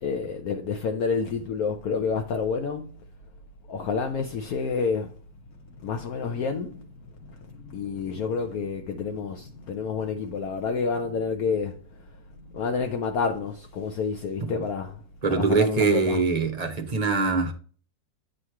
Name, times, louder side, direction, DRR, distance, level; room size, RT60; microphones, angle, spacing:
voice 1, 0.0-2.9 3.7-5.2 5.8-6.9 7.2-11.8 12.1-12.2 12.5-15.0 15.3-16.2, left 5 dB, 65° left, 1.1 m, -29 dB
voice 2, 15.2-17.5, right 4 dB, 30° right, 0.7 m, -23 dB
8.6 x 3.2 x 5.7 m
omnidirectional pair, 1.8 m